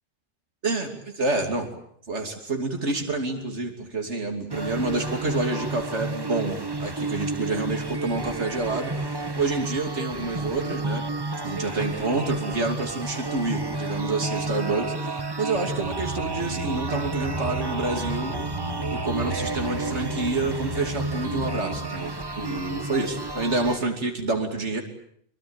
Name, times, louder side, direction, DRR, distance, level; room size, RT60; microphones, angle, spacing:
voice 1, 1.2-1.7 2.1-11.1 11.4-18.4 18.9-24.8, right 3 dB, 85° right, 4 dB, 3.2 m, -28 dB
sound 1, 4.5-23.8, right 2 dB, 20° right, 1.4 m, -31 dB
sound 2, 15.8-21.8, right 1 dB, 40° right, 3.5 m, -34 dB
24.0 x 24.0 x 8.8 m, 0.65 s
omnidirectional pair, 1.2 m